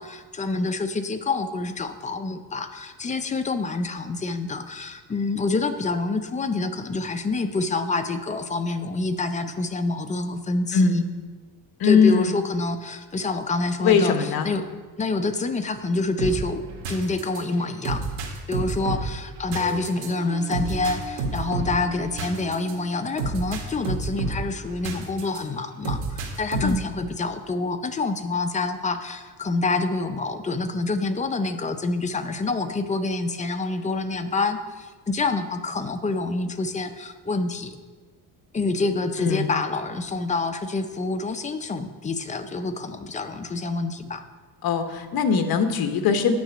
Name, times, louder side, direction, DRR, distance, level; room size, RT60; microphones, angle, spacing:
voice 1, 0.0-11.1 11.8-14.7 15.0-18.1 18.5-37.8 38.5-44.2, left 3 dB, 20° left, 8 dB, 0.5 m, -27 dB
voice 2, 11.8-12.4 13.8-14.5 26.6-26.8 39.2-39.5 44.6-46.3, left 6 dB, 55° left, 8 dB, 1.1 m, -21 dB
sound 1, 16.2-25.4 25.8-27.0, right 3 dB, 80° right, 1.9 m, -31 dB
9.4 x 5.9 x 7.5 m, 1.4 s
cardioid pair, 150°, 43 cm